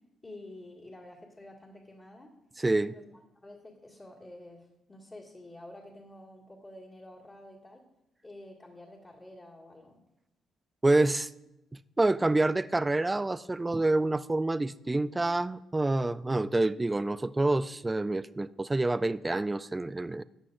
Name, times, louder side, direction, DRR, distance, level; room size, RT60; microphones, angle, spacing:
voice 1, 0.2-2.3 2.9-7.8 8.2-10.0, left 1 dB, 30° left, -7 dB, 2.0 m, -49 dB
voice 2, 2.6-2.9 10.8-11.3 12.0-20.2, right 2 dB, 15° right, 14 dB, 0.3 m, -27 dB
14.0 x 9.5 x 2.5 m, 0.92 s
cardioid pair, 90°, 0 cm